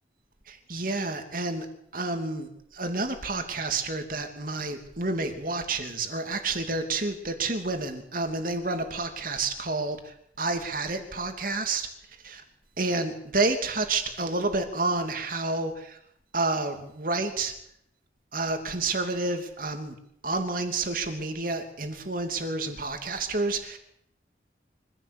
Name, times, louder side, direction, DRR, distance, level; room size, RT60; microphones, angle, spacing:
voice 1, 0.5-1.7 1.9-11.9 12.2-12.4 12.8-16.0 16.3-17.5 18.3-19.9 20.2-23.8, right 3 dB, 50° right, 6 dB, 2.9 m, -29 dB
24.5 x 15.5 x 8.5 m, 0.73 s
head